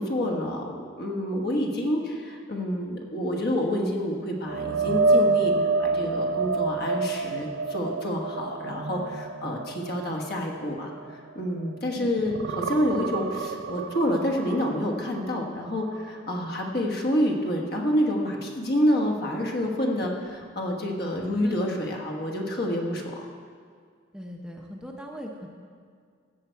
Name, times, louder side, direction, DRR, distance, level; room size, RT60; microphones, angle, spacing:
voice 1, 0.0-5.5 5.8-23.3, equal, 50° left, 1 dB, 1.3 m, -28 dB
sound 1, 4.5-11.9 12.2-16.1 16.5-16.7 20.0-20.1, right 3 dB, 75° right, 0.5 m, -28 dB
voice 2, 21.3-21.7 24.1-25.5, equal, 5° right, 0 dB, 0.7 m, -39 dB
14.0 x 8.0 x 4.6 m, 2.1 s
head